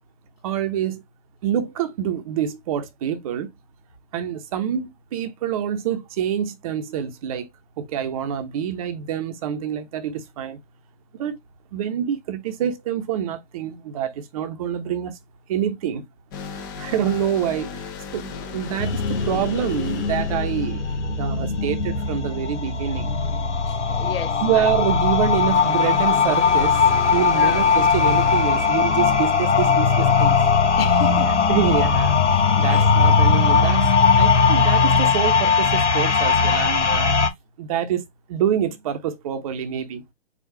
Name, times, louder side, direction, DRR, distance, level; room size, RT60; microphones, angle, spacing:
voice 1, 0.4-1.0 1.4-3.5 4.1-7.5 7.8-10.6 11.1-11.4 11.7-15.2 15.5-16.0 16.5-18.3 18.5-20.8 21.2-23.1 24.4-26.8 27.1-30.4 31.5-32.2 32.6-37.1 37.6-38.0 38.3-40.0, right 9 dB, 30° right, 0.8 m, -26 dB
sound 1, 16.3-21.8 25.3-30.0, left 7 dB, 20° left, 0.5 m, -36 dB
sound 2, 18.8-37.3, left 5 dB, 90° left, 1.1 m, -19 dB
voice 2, 23.7-24.7 27.4-27.6 30.8-31.3 32.7-32.9, left 8 dB, 60° left, 0.8 m, -32 dB
4.8 x 2.4 x 4.5 m
hypercardioid pair, 140°, 34 cm